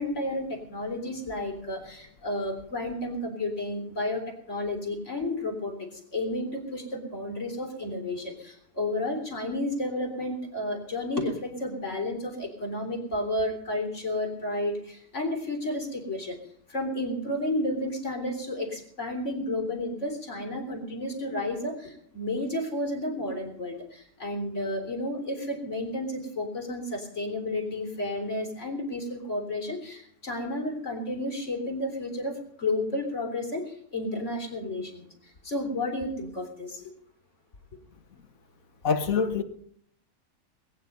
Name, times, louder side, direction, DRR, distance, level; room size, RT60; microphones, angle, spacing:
voice 1, 0.0-16.4 16.7-35.1 35.4-36.9, left 1 dB, 55° left, 3.9 m, -32 dB
voice 2, 38.8-39.4, left 6 dB, 70° left, 1.6 m, -24 dB
20.5 x 9.9 x 5.3 m
omnidirectional pair, 1.5 m